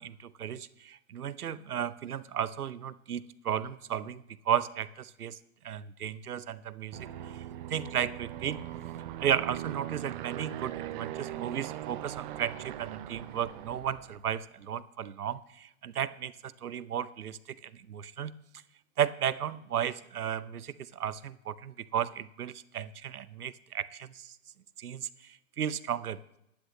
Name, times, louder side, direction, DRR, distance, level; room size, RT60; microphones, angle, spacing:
voice 1, 0.0-5.4 5.6-7.4 7.7-8.6 9.2-18.3 19.0-24.4 24.8-26.2, right 9 dB, 90° right, 16 dB, 0.7 m, -34 dB
Aircraft, 6.9-14.3, right 12 dB, 35° right, 0.6 m, -40 dB
15.0 x 10.0 x 3.1 m, 0.81 s
hypercardioid pair, 125°, 44 cm